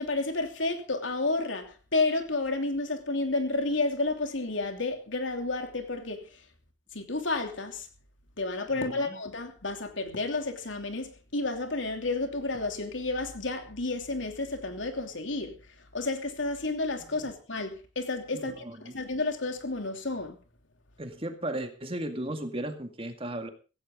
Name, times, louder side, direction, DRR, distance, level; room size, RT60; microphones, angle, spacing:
voice 1, 0.0-6.4 6.9-7.9 8.4-20.4, left 2 dB, 90° left, 2.9 m, -31 dB
voice 2, 8.7-9.2 17.1-17.3 18.3-19.0 21.0-23.5, right 1 dB, 30° right, 2.0 m, -36 dB
16.5 x 16.0 x 3.8 m
head